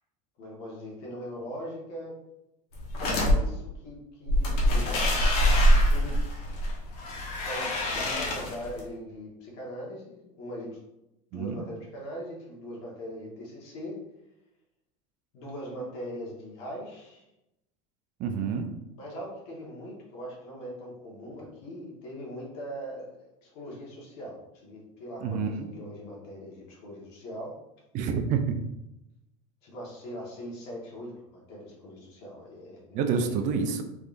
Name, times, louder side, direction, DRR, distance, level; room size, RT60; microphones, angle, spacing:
voice 1, 0.4-2.2 3.0-6.1 7.4-10.8 11.3-14.0 15.3-17.2 18.9-23.1 23.4-27.5 29.6-33.6, equal, 65° left, -3 dB, 1.5 m, -41 dB
sound 1, 2.7-3.3 4.3-8.8, equal, 90° left, 1.1 m, -24 dB
voice 2, 11.3-11.6 18.2-18.7 25.2-25.7 27.9-28.6 32.9-33.8, right 6 dB, 40° right, 6 dB, 0.4 m, -28 dB
3.6 x 3.3 x 2.5 m, 0.90 s
supercardioid pair, 140°, 19 cm